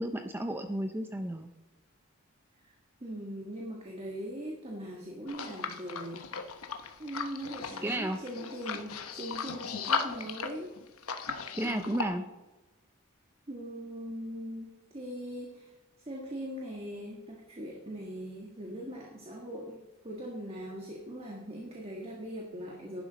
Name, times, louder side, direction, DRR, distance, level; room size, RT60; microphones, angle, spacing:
voice 1, 0.0-1.5 7.8-8.2 11.6-12.2, right 1 dB, 10° right, 7 dB, 0.5 m, -32 dB
voice 2, 3.0-6.6 7.0-10.7 11.5-12.3 13.5-15.7 16.1-19.8 20.0-23.0, equal, 30° right, -1 dB, 1.5 m, -41 dB
sound 1, 5.3-12.1, left 5 dB, 90° left, 1.0 m, -37 dB
11.5 x 10.5 x 4.0 m, 1.1 s
head